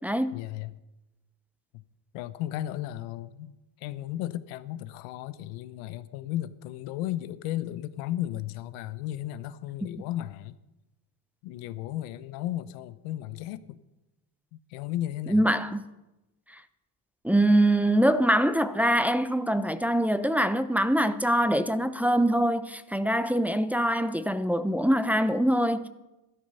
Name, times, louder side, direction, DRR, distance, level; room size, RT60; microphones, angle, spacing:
voice 1, 0.3-0.7 2.1-10.6 11.4-13.8 14.5-15.5, left 13 dB, 85° left, 0.9 m, -35 dB
voice 2, 15.3-15.8 17.2-25.9, right 1 dB, 5° right, 0.8 m, -24 dB
13.0 x 12.5 x 5.5 m
supercardioid pair, 80°, 47 cm